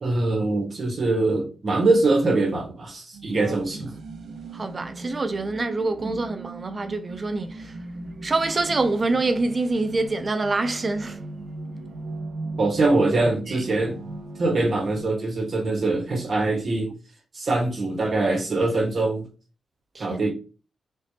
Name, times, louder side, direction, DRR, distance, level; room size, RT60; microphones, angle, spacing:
voice 1, 0.0-3.9 6.0-6.2 12.6-14.0 14.4-16.9 17.3-19.3 20.0-20.3, right 2 dB, 50° right, 1.4 m, -23 dB
sound 1, 3.1-15.0, right 2 dB, 85° right, 0.9 m, -38 dB
voice 2, 3.2-3.6 4.5-7.7 8.2-11.2 13.5-13.6 19.9-20.2, right 3 dB, 30° right, 0.5 m, -26 dB
4.3 x 3.3 x 2.8 m
wide cardioid pair, 140°, 0 cm